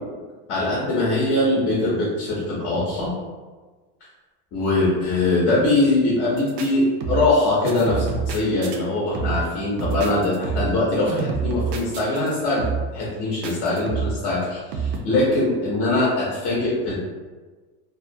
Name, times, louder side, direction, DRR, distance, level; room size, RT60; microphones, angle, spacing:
voice 1, 0.5-3.1 4.5-12.7 12.9-17.0, left 2 dB, 40° left, -6 dB, 0.6 m, -22 dB
sound 1, 6.4-6.7 7.0-7.4 7.6-8.8 9.1-9.5 9.8-10.8 11.1-12.3 12.6-13.0 13.4-14.2 14.7-15.0, right 5 dB, 60° right, 0.5 m, -27 dB
2.3 x 2.1 x 2.5 m, 1.3 s
supercardioid pair, 150°, 39 cm